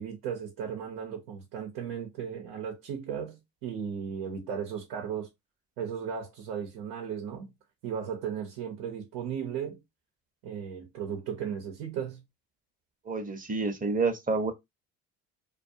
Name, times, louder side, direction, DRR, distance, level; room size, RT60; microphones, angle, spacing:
voice 1, 0.0-5.3 5.8-7.5 7.8-9.8 10.4-12.2, right 7 dB, 75° right, 0.9 m, -36 dB
voice 2, 13.1-14.5, right 4 dB, 20° right, 0.8 m, -28 dB
2.4 x 2.3 x 2.6 m
supercardioid pair, 75°, 38 cm